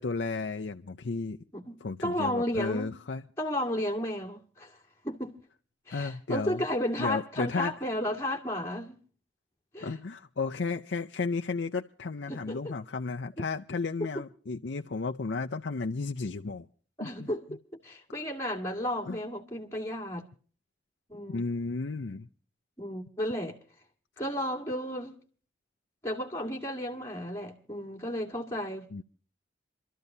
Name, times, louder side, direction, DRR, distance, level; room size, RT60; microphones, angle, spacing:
voice 1, 0.0-1.4 1.8-3.2 5.9-6.6 7.0-7.7 9.8-16.7 17.0-17.3 19.1-19.2 21.3-22.3 28.9-29.0, left 4 dB, 70° left, 0.6 m, -33 dB
voice 2, 1.5-2.9 3.4-4.8 5.0-5.3 5.9-9.0 9.7-10.0 12.3-12.6 17.0-20.3 21.1-21.4 22.8-23.6 24.2-25.2 26.0-29.0, equal, 15° left, 2.0 m, -33 dB
27.5 x 13.5 x 2.7 m
head